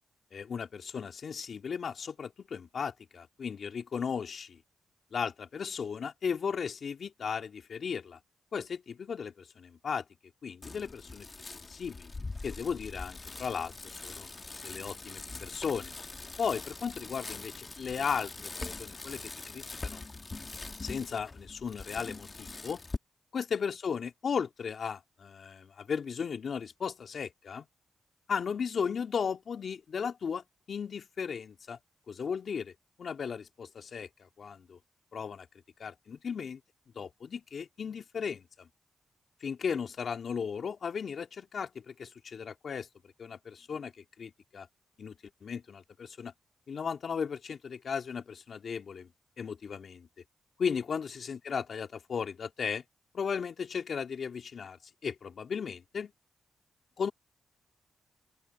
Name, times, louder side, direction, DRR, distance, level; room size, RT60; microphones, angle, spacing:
voice 1, 0.3-4.6 5.1-8.2 8.5-10.0 10.4-11.3 11.5-12.1 12.4-14.3 14.6-15.9 16.4-18.5 18.8-20.1 20.8-22.8 23.3-27.6 28.3-31.8 32.1-32.7 33.0-34.8 35.1-35.5 35.8-36.6 37.0-38.7 39.4-42.9 43.2-44.7 45.0-45.1 45.4-46.3 46.7-49.1 49.4-50.1 50.6-52.8 53.1-54.8 55.0-56.1 57.0-57.1, left 6 dB, 65° left, 2.6 m, -36 dB
Bicycle, 10.6-23.0, left 3 dB, 35° left, 1.7 m, -43 dB
open air
cardioid pair, 55°, 0 cm